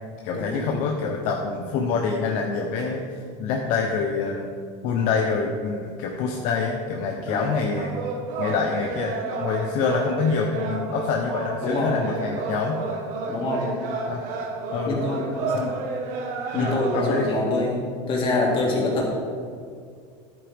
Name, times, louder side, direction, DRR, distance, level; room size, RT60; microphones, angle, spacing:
voice 1, 0.2-4.5 4.8-8.0 8.4-12.8 14.1-14.2 14.7-15.0 15.5-15.8 16.5-17.3, left 5 dB, 55° left, 1 dB, 0.9 m, -26 dB
voice 2, 7.3-7.6 11.6-12.0 13.3-13.7 14.9-15.3 16.5-17.8 18.1-19.1, left 2 dB, 35° left, -3 dB, 2.7 m, -25 dB
sound 1, 7.7-17.4, right 3 dB, 60° right, 1.4 m, -31 dB
11.0 x 8.7 x 3.6 m, 2.2 s
supercardioid pair, 140°, 15 cm